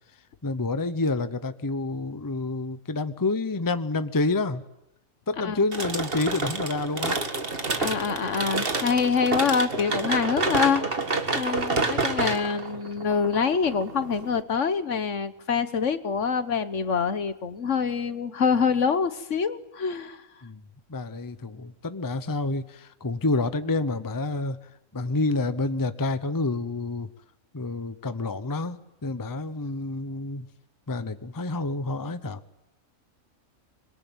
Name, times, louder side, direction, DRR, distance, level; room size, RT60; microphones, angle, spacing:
voice 1, 0.4-4.6 5.3-7.2 11.7-12.0 20.4-20.6 20.9-24.6 24.9-27.1 27.5-30.5 30.9-32.4, left 3 dB, 15° left, 12 dB, 0.8 m, -28 dB
sound 1, 5.7-14.4, right 3 dB, 40° right, 2.1 m, -29 dB
voice 2, 7.8-10.8 11.3-20.2, left 6 dB, 60° left, 12 dB, 1.5 m, -25 dB
26.0 x 22.0 x 9.3 m, 0.83 s
omnidirectional pair, 1.5 m